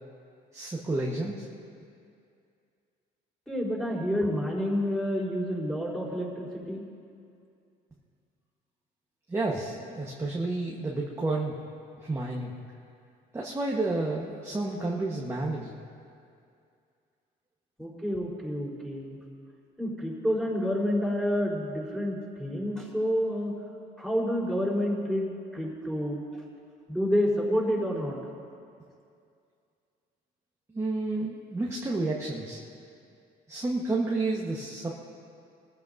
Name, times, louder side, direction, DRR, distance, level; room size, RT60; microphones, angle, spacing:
voice 1, 0.5-1.5 9.3-11.5 12.0-12.5 13.3-15.7 30.7-32.6 33.5-34.9, right 2 dB, 15° right, -3 dB, 1.3 m, -30 dB
voice 2, 3.5-6.8 17.8-19.2 19.8-23.6 24.0-25.3 25.5-26.2 26.9-28.2, equal, ahead, -5 dB, 4.2 m, -29 dB
23.5 x 14.5 x 2.7 m, 2.4 s
cardioid pair, 110°, 17 cm